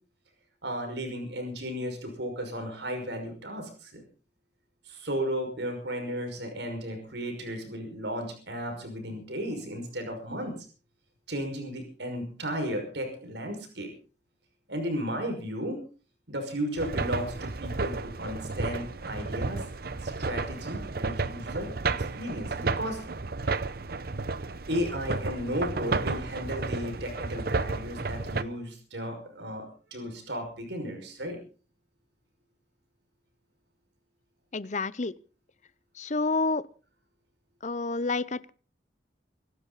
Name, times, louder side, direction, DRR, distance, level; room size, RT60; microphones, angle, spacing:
voice 1, 0.6-4.0 4.8-10.5 11.3-13.9 14.7-15.8 16.3-19.7 20.0-23.0 24.7-29.6 29.9-31.4, equal, 75° right, 5.7 m, -34 dB
sound 1, 16.8-28.4, right 3 dB, 55° right, 0.8 m, -32 dB
voice 2, 34.5-35.1 36.0-36.6 37.6-38.5, left 3 dB, 40° left, 0.7 m, -29 dB
25.0 x 12.5 x 4.1 m
head